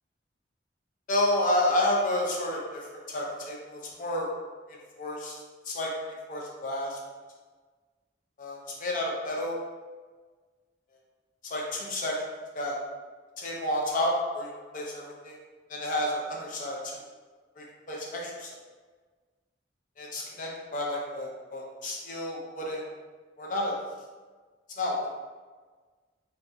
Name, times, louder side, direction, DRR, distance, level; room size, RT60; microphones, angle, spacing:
voice 1, 1.1-2.8 3.1-4.3 5.0-5.4 5.7-7.0 8.4-9.6 11.4-12.1 12.5-12.8 13.4-15.4 15.7-17.0 17.6-18.5 20.0-22.8 23.4-23.8 24.8-25.1, left 1 dB, 50° left, -2 dB, 0.6 m, -30 dB
4.0 x 2.6 x 2.3 m, 1.4 s
head